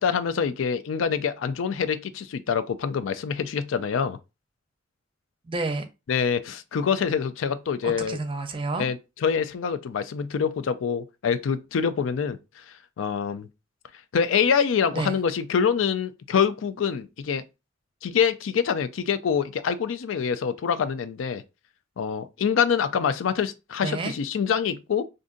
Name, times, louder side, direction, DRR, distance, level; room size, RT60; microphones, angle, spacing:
voice 1, 0.0-4.2 6.1-8.2 8.8-9.0 9.2-12.4 13.0-13.5 14.1-17.4 18.0-21.4 22.0-25.0, left 6 dB, 80° left, 0.4 m, -25 dB
voice 2, 5.4-5.8 7.8-8.9 14.9-15.1 23.8-24.1, right 3 dB, 25° right, 0.5 m, -29 dB
2.6 x 2.5 x 3.7 m
head